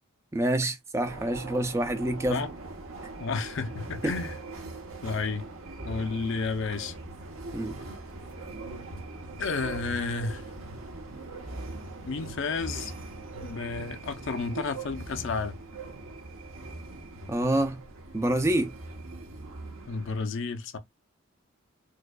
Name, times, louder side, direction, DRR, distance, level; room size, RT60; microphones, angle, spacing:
voice 1, 0.3-2.4 7.5-7.8 17.3-17.8 18.1-18.7, right 1 dB, 15° right, 0.4 m, -27 dB
sound 1, 1.0-20.2, right 2 dB, 70° right, 0.9 m, -41 dB
voice 2, 3.2-4.4 5.0-5.5 5.9-7.0 9.4-10.4 12.1-12.9 13.4-15.6 19.9-20.8, left 4 dB, 55° left, 0.5 m, -31 dB
4.5 x 2.3 x 2.2 m
head